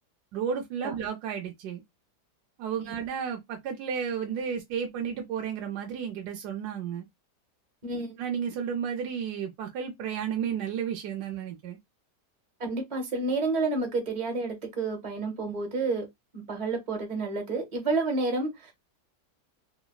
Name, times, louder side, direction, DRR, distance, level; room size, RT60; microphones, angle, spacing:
voice 1, 0.3-1.8 2.6-7.1 8.2-11.8, right 7 dB, 75° right, 1.1 m, -32 dB
voice 2, 7.8-8.2 12.6-16.1 16.3-18.7, right 3 dB, 40° right, 0.6 m, -30 dB
3.2 x 2.3 x 2.2 m
omnidirectional pair, 1.8 m